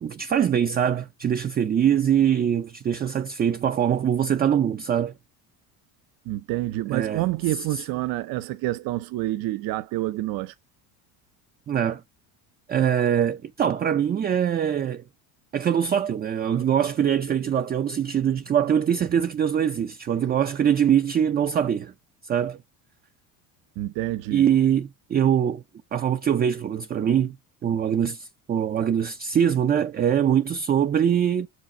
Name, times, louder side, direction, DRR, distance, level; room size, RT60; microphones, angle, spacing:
voice 1, 0.0-5.1 6.9-7.8 11.7-12.0 12.7-15.0 15.5-21.9 22.2-22.6 24.3-25.6 25.9-27.4 27.6-31.5, right 9 dB, 25° right, 0.5 m, -23 dB
voice 2, 6.3-10.5 23.8-24.4, right 17 dB, 55° right, 0.8 m, -28 dB
6.3 x 5.1 x 4.3 m
supercardioid pair, 115°, 40 cm